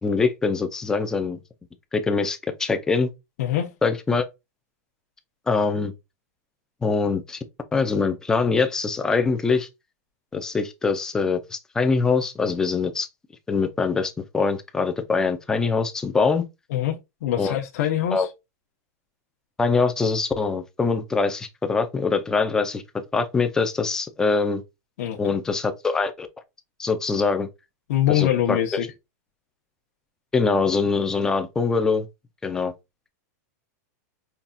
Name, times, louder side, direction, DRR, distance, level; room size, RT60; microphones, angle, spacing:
voice 1, 0.0-1.4 1.9-3.1 3.8-4.3 5.5-5.9 6.8-7.4 7.7-9.7 10.3-13.1 13.5-16.5 17.4-17.6 18.1-18.3 19.6-24.6 25.2-26.3 26.8-27.5 28.1-28.6 30.3-32.1 32.4-32.7, left 4 dB, 5° left, 0.4 m, -23 dB
voice 2, 3.4-3.7 16.7-18.3 25.0-25.4 27.9-28.9, left 11 dB, 60° left, 0.9 m, -24 dB
5.6 x 2.3 x 2.6 m
supercardioid pair, 170°, 9 cm